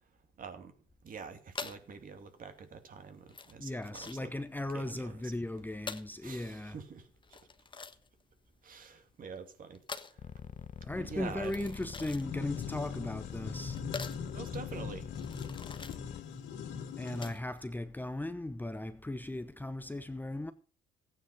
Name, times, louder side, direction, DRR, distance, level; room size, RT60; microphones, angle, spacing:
voice 1, 0.4-0.7 1.0-4.3 4.7-5.3 6.2-7.4 8.6-9.8 10.9-11.6 14.3-15.1, right 5 dB, 50° right, 2.5 m, -46 dB
sound 1, 1.5-17.6, left 4 dB, 25° left, 1.3 m, -47 dB
voice 2, 3.6-6.8 10.9-13.8 17.0-20.5, left 1 dB, 10° left, 0.9 m, -37 dB
sound 2, 10.2-16.2, left 8 dB, 40° left, 0.9 m, -44 dB
sound 3, 12.2-17.3, left 7 dB, 75° left, 2.2 m, -41 dB
14.5 x 9.2 x 5.2 m
supercardioid pair, 70°, 19 cm